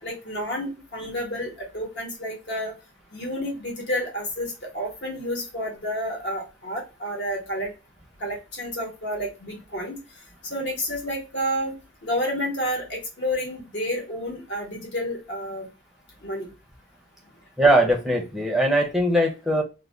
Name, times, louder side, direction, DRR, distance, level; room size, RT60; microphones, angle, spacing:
voice 1, 0.0-2.7 3.1-7.7 8.2-10.0 10.4-11.7 12.0-15.7 16.2-16.5, equal, 55° left, 0 dB, 1.1 m, -30 dB
voice 2, 17.6-19.6, right 1 dB, ahead, 0 dB, 0.5 m, -20 dB
2.5 x 2.1 x 3.1 m, 0.29 s
head